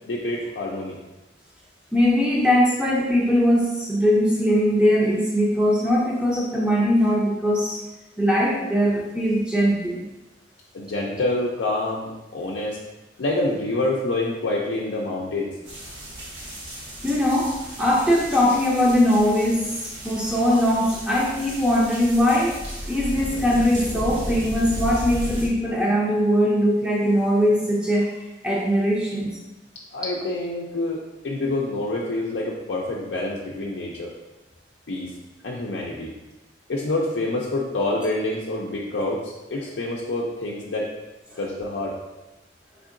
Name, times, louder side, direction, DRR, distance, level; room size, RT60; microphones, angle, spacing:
voice 1, 0.1-1.0 10.7-12.8 13.2-15.5 29.9-34.1 34.9-35.1 35.4-36.1 36.7-40.9 41.4-42.0, left 2 dB, 85° left, -3 dB, 0.5 m, -27 dB
voice 2, 1.9-7.8 8.2-10.0 17.0-22.6 22.8-29.3 41.3-41.4, equal, 5° right, -4 dB, 0.5 m, -21 dB
sound 1, 15.6-25.5, equal, 85° right, 1.5 m, -34 dB
3.6 x 3.5 x 2.5 m, 1.0 s
head